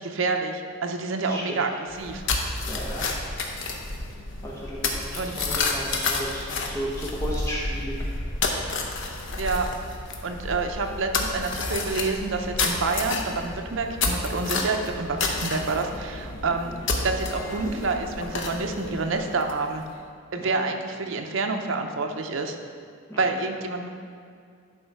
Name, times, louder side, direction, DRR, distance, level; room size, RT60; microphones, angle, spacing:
voice 1, 0.0-1.7 2.0-2.2 5.2-5.5 9.4-9.7 10.2-19.8 20.3-22.5 23.2-23.9, right 3 dB, 70° right, 4 dB, 0.7 m, -28 dB
voice 2, 1.3-1.6 2.7-3.1 4.4-8.0 16.4-16.7 20.4-20.6 23.1-23.4, equal, 15° left, -5 dB, 0.9 m, -34 dB
sound 1, 1.9-19.8, left 3 dB, 65° left, 0.8 m, -30 dB
10.5 x 3.9 x 4.6 m, 2.2 s
head